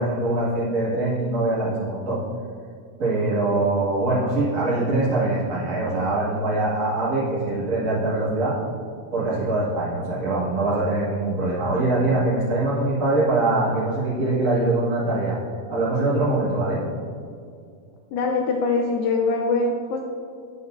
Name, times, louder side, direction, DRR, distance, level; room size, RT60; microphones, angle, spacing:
voice 1, 0.0-2.2 3.0-8.5 9.1-15.4 15.7-16.8, right 2 dB, 40° right, -9 dB, 1.2 m, -23 dB
voice 2, 18.1-20.0, left 3 dB, 85° left, 0 dB, 2.1 m, -23 dB
9.7 x 6.8 x 2.6 m, 2.3 s
omnidirectional pair, 4.6 m